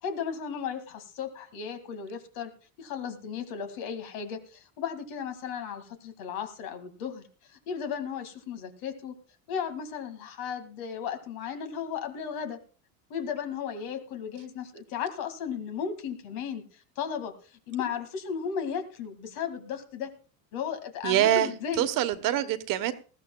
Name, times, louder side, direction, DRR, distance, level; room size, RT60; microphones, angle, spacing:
voice 1, 0.0-2.5 2.8-7.2 7.7-9.1 9.5-12.6 13.1-16.6 17.0-17.3 17.7-20.1 20.5-21.8, left 7 dB, 70° left, 8 dB, 2.2 m, -35 dB
voice 2, 21.0-21.5 21.8-22.9, right 12 dB, 60° right, 10 dB, 1.2 m, -24 dB
19.5 x 14.0 x 2.3 m, 0.36 s
cardioid pair, 120°, 38 cm